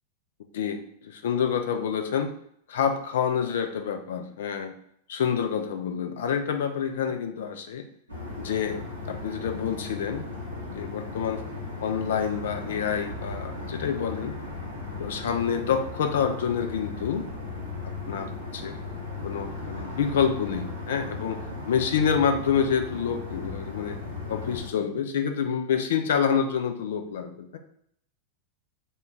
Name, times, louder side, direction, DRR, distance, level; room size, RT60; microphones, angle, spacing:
voice 1, 0.5-2.3 2.7-4.7 5.1-7.8 8.4-10.3 10.7-11.4 11.8-14.3 15.0-17.2 17.8-18.8 19.2-21.4 21.7-24.0 24.3-27.6, left 7 dB, 60° left, 6 dB, 0.4 m, -27 dB
sound 1, 8.1-24.7, left 3 dB, 85° left, 0.9 m, -37 dB
3.7 x 2.3 x 3.8 m, 0.70 s
figure-of-eight pair, 90°, 0 cm